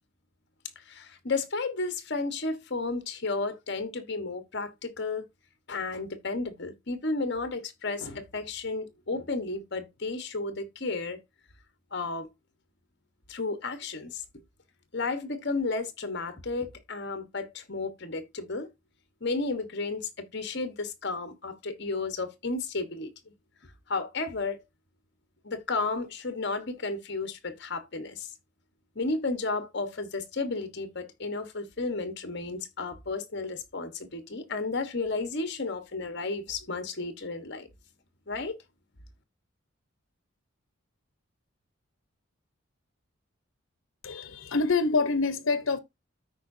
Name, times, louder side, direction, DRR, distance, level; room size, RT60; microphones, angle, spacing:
voice 1, 0.8-5.3 5.7-11.2 11.9-12.3 13.3-14.2 14.9-18.7 19.2-23.1 23.6-24.6 25.4-28.3 28.9-37.7 38.3-38.5, left 3 dB, 50° left, 1.2 m, -33 dB
voice 2, 44.0-45.8, left 4 dB, 75° left, 0.9 m, -26 dB
13.5 x 4.8 x 2.7 m
head